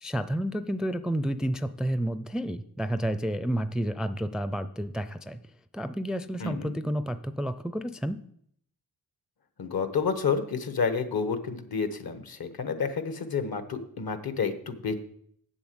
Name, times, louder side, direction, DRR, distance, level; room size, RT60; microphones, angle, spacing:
voice 1, 0.0-5.4 5.7-8.2, equal, ahead, 12 dB, 0.4 m, -30 dB
voice 2, 6.4-6.7 9.6-14.9, left 5 dB, 65° left, 9 dB, 1.3 m, -30 dB
7.7 x 7.2 x 7.9 m, 0.69 s
cardioid pair, 80°, 39 cm